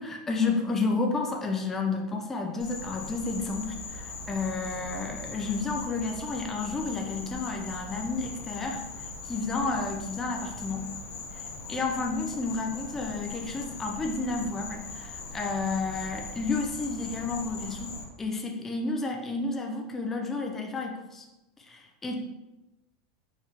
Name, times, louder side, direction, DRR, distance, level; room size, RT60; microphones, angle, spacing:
voice 1, 0.0-10.9 11.3-21.3 21.6-22.2, left 3 dB, 10° left, 2 dB, 0.4 m, -31 dB
Insect, 2.6-18.0, left 3 dB, 45° left, 0.9 m, -40 dB
4.4 x 3.3 x 3.6 m, 1.0 s
supercardioid pair, 170°, 3 cm